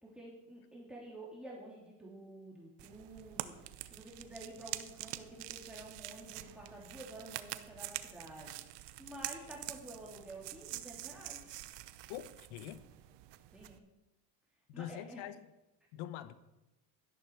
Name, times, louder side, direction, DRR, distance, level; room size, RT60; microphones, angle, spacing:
voice 1, 0.0-11.5 13.5-13.8 14.7-15.3, right 1 dB, ahead, -4 dB, 3.1 m, -50 dB
sound 1, 2.8-13.8, right 15 dB, 60° right, 0.9 m, -46 dB
voice 2, 12.1-12.9 14.7-15.5 15.9-16.3, left 12 dB, 75° left, 14 dB, 1.0 m, -44 dB
12.0 x 10.5 x 4.7 m, 1.0 s
supercardioid pair, 85°, 48 cm